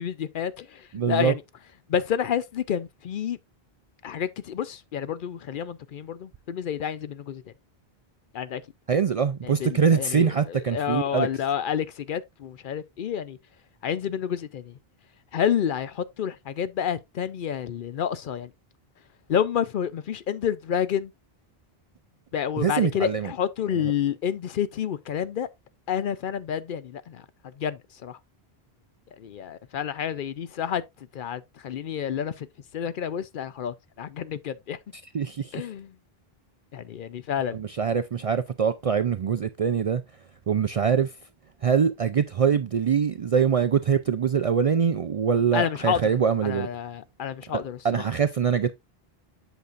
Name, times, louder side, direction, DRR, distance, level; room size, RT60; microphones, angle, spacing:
voice 1, 0.0-1.4 1.9-3.4 4.0-7.4 8.3-8.6 9.4-13.4 13.8-14.7 15.3-18.5 19.3-21.1 22.3-25.5 25.9-27.2 27.6-28.2 29.2-30.8 31.1-32.5 32.7-34.8 35.5-35.9 36.7-37.6 45.5-46.0 46.4-47.8, left 8 dB, 60° left, 0.6 m, -29 dB
voice 2, 0.9-1.3 8.9-11.3 22.6-23.3 35.1-35.7 37.5-40.0 40.5-41.1 41.6-46.7 47.5-48.7, right 7 dB, 55° right, 0.4 m, -23 dB
8.0 x 6.5 x 2.4 m
omnidirectional pair, 1.0 m